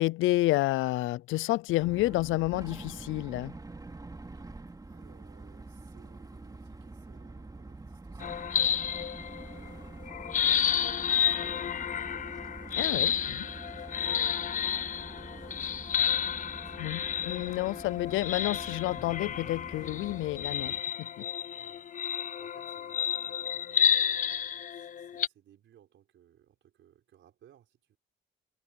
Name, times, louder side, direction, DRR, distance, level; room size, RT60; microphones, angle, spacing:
voice 1, 0.0-3.5 12.7-13.5 16.8-21.2, left 18 dB, 90° left, 0.5 m, -30 dB
sound 1, 1.8-20.8, right 2 dB, 20° right, 3.1 m, -46 dB
voice 2, 4.8-12.3 13.1-15.9 16.4-17.5 21.5-28.0, right 10 dB, 70° right, 4.7 m, -62 dB
sound 2, 8.2-9.7 10.0-25.3, left 9 dB, 40° left, 0.5 m, -31 dB
cardioid pair, 90°, 20 cm